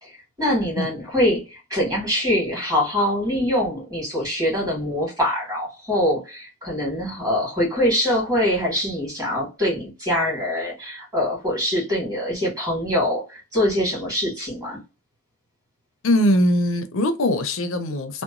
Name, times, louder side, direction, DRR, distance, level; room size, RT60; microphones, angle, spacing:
voice 1, 0.0-14.8, left 1 dB, 15° right, 1.5 m, -24 dB
voice 2, 16.0-18.2, left 1 dB, 60° left, 0.5 m, -21 dB
2.8 x 2.1 x 2.4 m
head